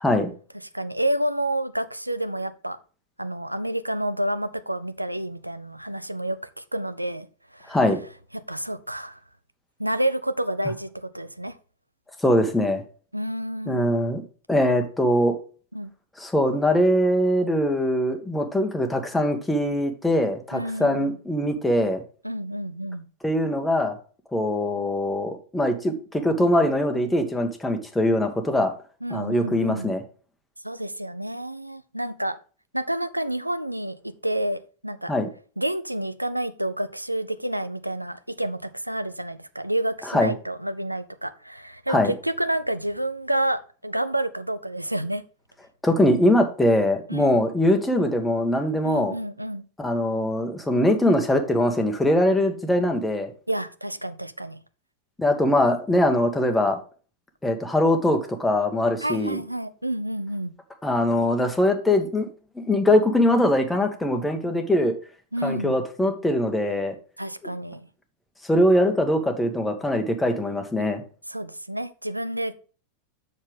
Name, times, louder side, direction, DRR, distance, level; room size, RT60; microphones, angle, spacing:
voice 1, 0.7-2.8 3.2-7.3 7.5-7.8 8.5-9.2 9.8-11.6 13.1-13.9 15.7-15.9 20.5-21.2 22.2-23.0 29.0-29.9 30.6-32.4 32.7-35.1 35.6-45.2 47.1-47.4 48.8-49.6 53.5-54.6 59.0-60.5 65.3-65.8 67.2-67.9 71.3-72.5, right 1 dB, 85° right, 0.5 m, -29 dB
voice 2, 7.7-8.0 12.2-12.8 13.7-14.2 14.5-15.4 16.2-22.0 23.2-23.9 24.3-28.7 29.1-30.0 35.1-35.3 40.1-40.3 41.9-42.1 45.8-49.1 49.8-53.3 55.2-56.8 57.4-59.4 60.8-62.3 62.6-64.9 65.4-66.9 68.5-71.0, left 1 dB, 5° left, 1.4 m, -22 dB
7.3 x 6.5 x 3.4 m
figure-of-eight pair, 90°, 0 cm